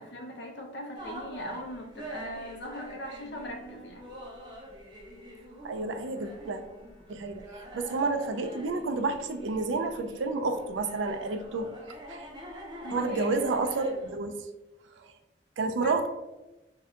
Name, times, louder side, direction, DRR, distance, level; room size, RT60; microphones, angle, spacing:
voice 1, 0.0-4.1 12.8-13.4 15.8-16.0, left 1 dB, 70° left, 1 dB, 0.7 m, -39 dB
sound 1, 1.0-14.1, right 1 dB, 25° right, 0.5 m, -46 dB
voice 2, 5.6-6.6 7.1-11.7 12.1-12.3 12.9-14.4 15.6-16.1, right 3 dB, 90° right, 8 dB, 0.4 m, -30 dB
2.6 x 2.2 x 3.6 m, 1.0 s
head